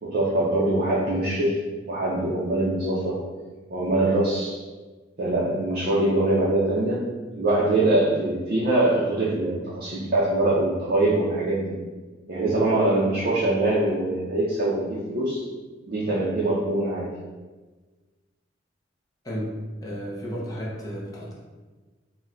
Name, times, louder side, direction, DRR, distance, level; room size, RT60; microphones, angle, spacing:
voice 1, 0.0-1.6 1.9-3.2 3.7-4.6 5.2-7.1 7.3-11.8 12.3-15.4 15.9-17.1, right 2 dB, 50° right, -6 dB, 0.5 m, -23 dB
voice 2, 19.2-21.3, equal, 20° left, -5 dB, 0.6 m, -33 dB
4.0 x 2.1 x 2.5 m, 1.3 s
head